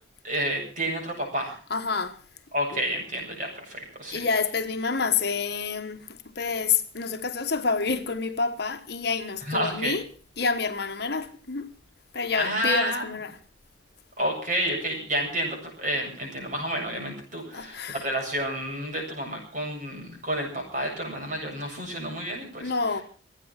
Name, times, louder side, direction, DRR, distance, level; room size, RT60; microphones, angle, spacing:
voice 1, 0.2-1.6 2.5-4.3 9.4-9.9 12.4-13.0 14.2-22.7, right 1 dB, 40° right, 7.6 m, -30 dB
voice 2, 1.7-2.2 2.7-2.8 4.1-6.0 6.3-10.0 10.4-11.7 12.1-13.3 17.5-18.0 22.6-23.0, left 5 dB, 55° left, 1.4 m, -28 dB
25.5 x 9.3 x 5.8 m
head